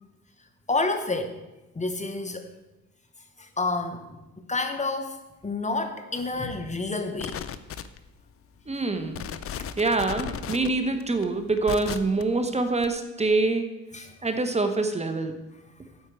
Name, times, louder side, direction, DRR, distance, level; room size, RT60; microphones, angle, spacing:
voice 1, 0.7-1.4 1.7-2.5 3.4-4.1 4.4-7.4 10.5-10.7 13.9-14.1, left 3 dB, 25° left, 7 dB, 0.9 m, -29 dB
sound 1, 7.2-8.2 8.7-8.8 9.1-12.2 12.8-12.9, left 8 dB, 50° left, 0.6 m, -35 dB
voice 2, 8.7-9.3 9.8-13.6 14.2-15.4, right 3 dB, 20° right, 7 dB, 1.0 m, -25 dB
9.5 x 4.5 x 7.5 m, 1.0 s
cardioid pair, 90°, 30 cm